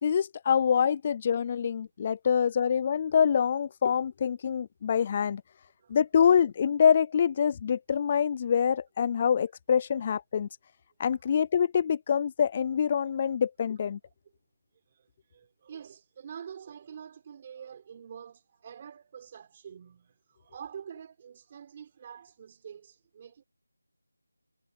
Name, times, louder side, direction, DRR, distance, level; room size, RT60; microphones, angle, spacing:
voice 1, 0.0-5.4 5.9-10.5 11.0-14.0, left 7 dB, 20° left, 0.3 m, -25 dB
voice 2, 14.9-23.4, right 8 dB, 20° right, 4.3 m, -46 dB
figure-of-eight pair, 175°, 0 cm